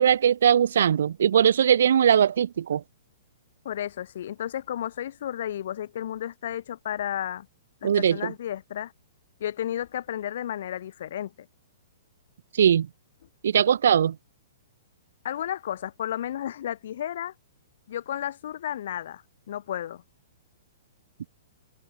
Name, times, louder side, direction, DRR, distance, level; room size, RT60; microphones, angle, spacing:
voice 1, 0.0-2.8 7.8-8.3 12.5-12.9 13.4-14.2, right 9 dB, 70° right, 0.4 m, -20 dB
voice 2, 3.6-7.5 7.8-8.9 9.4-11.5 15.2-17.3 17.9-19.2 19.5-20.0, left 11 dB, 60° left, 6.4 m, -32 dB
hypercardioid pair, 160°, 0 cm